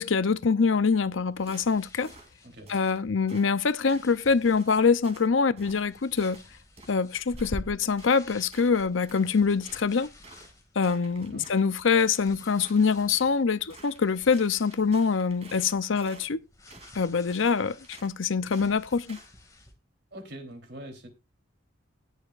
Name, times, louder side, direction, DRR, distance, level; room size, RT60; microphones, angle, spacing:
voice 1, 0.0-2.1 2.7-6.4 6.9-10.1 10.8-16.4 16.9-19.2, left 5 dB, 75° left, 0.7 m, -24 dB
sound 1, 0.8-19.7, left 1 dB, 15° left, 2.3 m, -49 dB
sound 2, 1.5-1.7 2.0-2.3 2.7-3.0 3.3-3.5 3.9-4.1 4.5-4.7 5.0-5.3 5.6-5.9 6.2-6.4 6.8-7.5 8.0-8.1 8.5-9.3 9.6-10.5 10.8-12.2 12.6-13.4 13.7-14.0 14.3-16.3 16.7-17.0 17.3-17.6 17.8-18.1 18.5-18.7 19.1-19.3, right 3 dB, 30° right, 3.0 m, -51 dB
voice 2, 20.1-21.1, right 1 dB, 55° right, 3.6 m, -43 dB
19.5 x 6.6 x 2.5 m
head